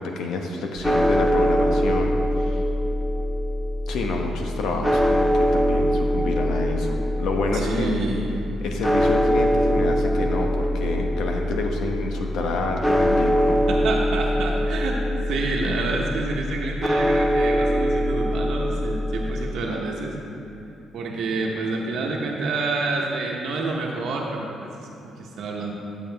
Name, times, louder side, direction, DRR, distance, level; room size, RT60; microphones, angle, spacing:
voice 1, 0.0-2.6 3.9-8.0 8.6-13.7, left 3 dB, 80° left, 2 dB, 0.9 m, -28 dB
sound 1, 0.8-19.5, equal, 5° left, 0.4 m, -23 dB
voice 2, 7.5-8.3 13.7-20.1 20.9-25.7, right 3 dB, 70° right, -1 dB, 1.0 m, -28 dB
10.5 x 7.0 x 3.4 m, 2.7 s
cardioid pair, 130°, 0 cm